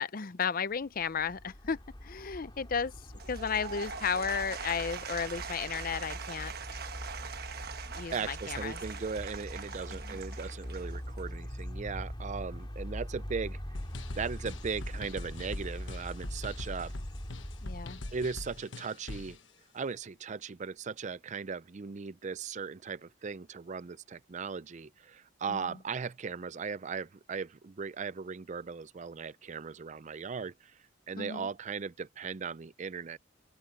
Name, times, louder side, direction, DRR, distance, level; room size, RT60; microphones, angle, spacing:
voice 1, 0.0-2.9 3.3-6.8 8.0-8.8 10.0-10.2 17.6-18.0 25.5-25.8 31.2-31.5, left 6 dB, 50° left, 0.6 m, -34 dB
sound 1, 0.9-18.5, equal, 25° left, 3.1 m, -42 dB
Applause / Crowd, 3.1-11.3, right 6 dB, 55° right, 1.2 m, -42 dB
voice 2, 8.1-13.6 14.2-16.9 18.1-19.4 19.7-30.8 31.1-33.2, right 5 dB, 40° right, 0.5 m, -38 dB
sound 2, 13.7-19.4, left 2 dB, 80° left, 1.3 m, -43 dB
open air
head